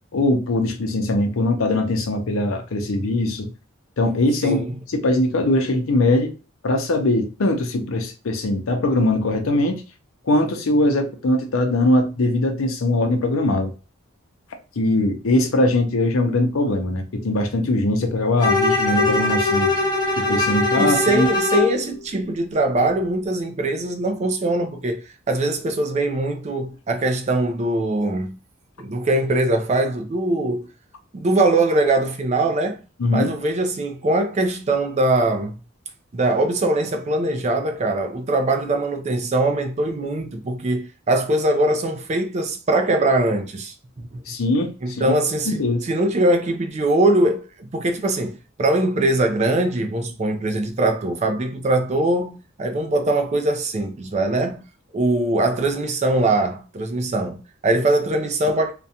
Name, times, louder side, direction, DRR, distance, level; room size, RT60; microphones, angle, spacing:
voice 1, 0.1-3.5 4.0-6.3 6.6-9.8 10.3-13.7 14.8-19.7 20.2-21.3 33.0-33.3 44.3-45.2 45.5-45.8, left 1 dB, 90° left, 0.6 m, -21 dB
Bowed string instrument, 18.4-21.8, left 3 dB, 20° left, 0.7 m, -21 dB
voice 2, 20.8-28.4 28.8-30.7 31.1-32.8 33.1-35.6 36.1-44.2 44.8-54.7 54.9-58.7, right 2 dB, 35° right, 0.4 m, -22 dB
2.5 x 2.2 x 2.7 m
head